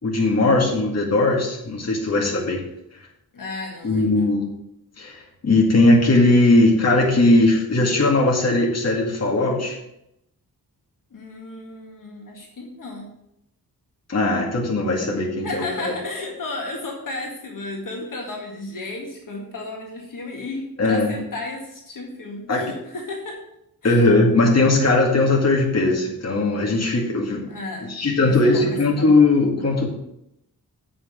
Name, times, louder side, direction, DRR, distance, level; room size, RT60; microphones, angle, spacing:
voice 1, 0.0-2.6 3.8-4.5 5.0-9.8 14.1-15.9 20.8-21.2 22.5-22.7 23.8-27.5 27.8-29.9, left 2 dB, 45° left, -1 dB, 2.1 m, -19 dB
voice 2, 3.3-4.2 11.1-13.1 15.4-23.4 23.8-24.0 27.5-27.9 28.2-29.1, left 2 dB, 60° left, -1 dB, 2.0 m, -33 dB
7.9 x 5.9 x 7.3 m, 0.81 s
wide cardioid pair, 130°, 36 cm